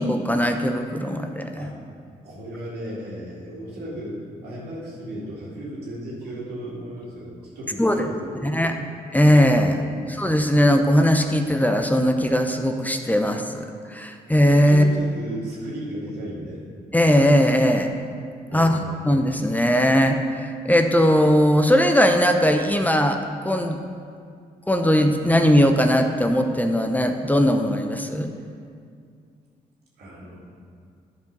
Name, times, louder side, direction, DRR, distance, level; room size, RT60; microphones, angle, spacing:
voice 1, 0.0-1.5 7.8-8.1 8.4-8.7 9.1-9.8 10.1-14.8 16.9-17.9 18.5-18.8 19.0-23.2 23.4-23.8 24.7-28.3, equal, 10° left, 5 dB, 0.7 m, -19 dB
voice 2, 2.2-8.6 9.6-10.1 14.7-16.6 18.5-18.9 30.0-30.4, equal, 80° right, -5 dB, 2.2 m, -35 dB
10.5 x 4.8 x 5.3 m, 2.3 s
supercardioid pair, 55°, 17 cm